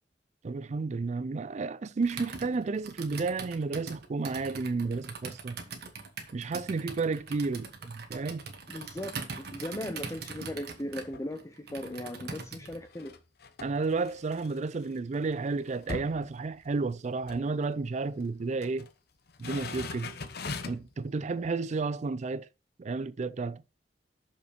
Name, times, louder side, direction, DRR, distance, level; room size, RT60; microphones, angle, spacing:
voice 1, 0.4-5.6 6.3-8.4 13.6-18.9 19.4-20.1 20.7-22.5 22.8-23.6, right 4 dB, 40° right, 0.4 m, -32 dB
Computer keyboard, 2.0-12.8, right 4 dB, 65° right, 1.4 m, -42 dB
voice 2, 8.7-13.2, left 1 dB, 15° left, 0.6 m, -38 dB
sound 1, 10.9-11.3 11.8-14.9 15.2-15.3 15.6-17.0 17.2-17.5 18.3-18.9 19.3-20.9 21.4-21.5, left 3 dB, 60° left, 0.9 m, -41 dB
6.6 x 5.6 x 5.1 m
head